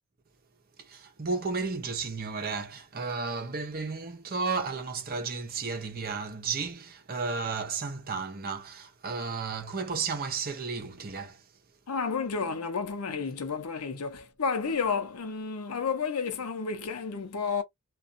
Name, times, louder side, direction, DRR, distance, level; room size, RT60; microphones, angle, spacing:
voice 1, 0.8-11.5, right 4 dB, 45° right, 0.7 m, -33 dB
voice 2, 11.9-17.6, left 5 dB, 90° left, 0.7 m, -31 dB
2.5 x 2.4 x 2.5 m
head